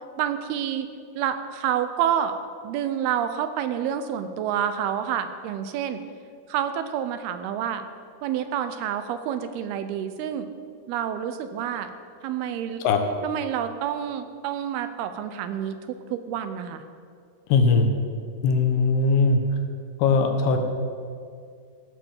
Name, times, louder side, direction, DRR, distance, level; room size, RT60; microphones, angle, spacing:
voice 1, 0.2-0.9 1.2-6.0 6.5-7.9 8.2-10.5 10.9-11.9 12.2-12.8 13.2-16.8, right 9 dB, 85° right, 10 dB, 2.6 m, -28 dB
voice 2, 17.5-17.9 18.4-19.4 20.0-20.6, left 4 dB, 85° left, 5 dB, 3.1 m, -20 dB
15.5 x 7.7 x 7.1 m, 2.2 s
omnidirectional pair, 4.6 m